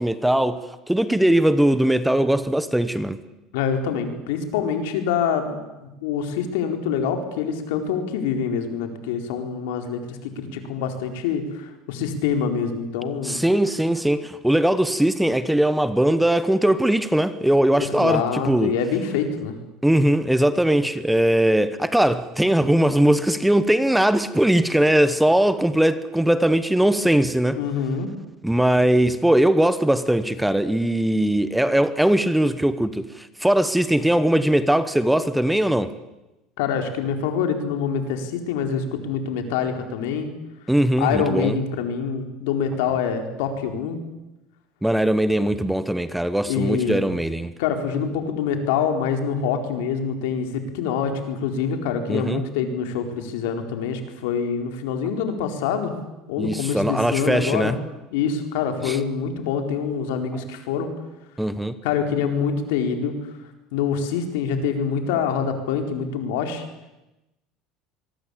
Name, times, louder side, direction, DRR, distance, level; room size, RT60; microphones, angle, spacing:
voice 1, 0.0-3.2 13.2-18.7 19.8-27.6 28.4-35.9 40.7-41.6 44.8-47.5 52.1-52.4 56.4-57.8 58.8-59.0 60.3-60.4 61.4-61.8, right 1 dB, 5° right, 1.1 m, -20 dB
voice 2, 3.5-13.4 17.8-19.6 27.5-28.1 36.6-40.3 41.0-44.0 46.5-47.1 47.6-55.9 56.3-57.8 58.1-60.9 61.8-63.2 63.7-66.6, left 6 dB, 90° left, 4.3 m, -25 dB
25.0 x 22.0 x 8.6 m
cardioid pair, 145°, 0 cm